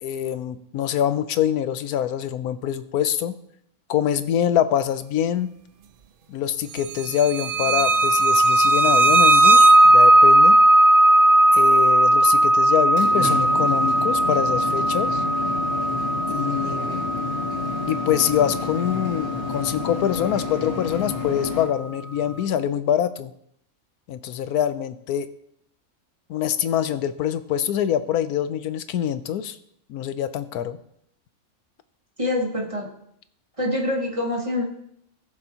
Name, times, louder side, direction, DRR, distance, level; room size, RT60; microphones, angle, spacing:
voice 1, 0.0-3.4 3.9-5.5 6.3-10.6 11.5-15.2 16.3-17.0 17.9-23.3 24.1-25.3 26.3-29.6 29.9-30.8, left 10 dB, 90° left, 12 dB, 1.1 m, -25 dB
sound 1, 7.4-19.9, right 1 dB, 60° right, 0.6 m, -17 dB
sound 2, 12.7-21.6, left 5 dB, 65° left, 2.5 m, -30 dB
voice 2, 32.2-32.9 33.6-34.6, left 1 dB, 25° right, 2 dB, 1.0 m, -25 dB
18.5 x 6.9 x 2.9 m, 0.71 s
omnidirectional pair, 1.6 m